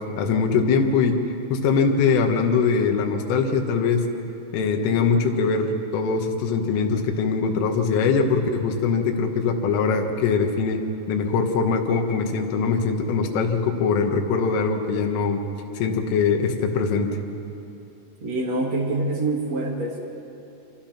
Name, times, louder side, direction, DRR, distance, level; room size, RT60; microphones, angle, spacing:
voice 1, 0.2-1.2 1.5-4.0 4.5-10.8 11.1-15.4 15.8-17.1, left 5 dB, 80° left, 3 dB, 4.0 m, -22 dB
voice 2, 18.2-20.0, right 2 dB, 45° right, -1 dB, 2.6 m, -25 dB
25.5 x 24.5 x 5.9 m, 2.8 s
omnidirectional pair, 5.8 m